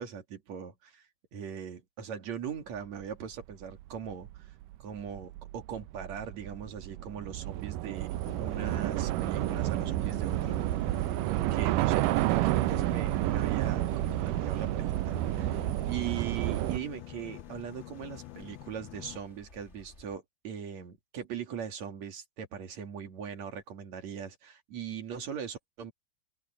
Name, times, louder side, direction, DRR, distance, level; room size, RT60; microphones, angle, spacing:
voice 1, 0.0-4.5 4.8-8.1 8.4-10.9 11.3-25.9, right 8 dB, 50° right, 3.3 m, -40 dB
Train / Subway metro underground, 3.4-3.5 3.8-16.8, right 16 dB, 90° right, 1.9 m, -30 dB
Boat Water vehicle, 8.2-19.2, left 18 dB, 85° left, 2.6 m, -46 dB
sound 1, 12.1-20.2, left 2 dB, 25° left, 1.9 m, -56 dB
omnidirectional pair, 4.4 m